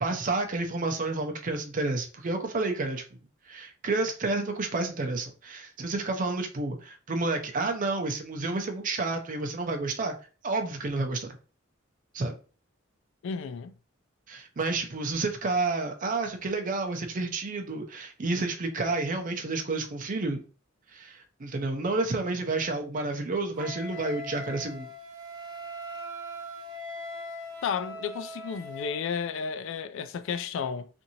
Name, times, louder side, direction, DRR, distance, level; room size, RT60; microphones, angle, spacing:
voice 1, 0.0-3.0 3.5-10.1 10.4-11.4 12.1-12.3 14.3-20.4 20.9-24.9, right 3 dB, 40° right, 0.5 m, -30 dB
voice 2, 13.2-13.7 27.6-30.9, left 6 dB, 65° left, 0.3 m, -32 dB
Wind instrument woodwind instrument, 23.5-29.0, equal, 25° right, 0.9 m, -40 dB
2.8 x 2.6 x 2.7 m
head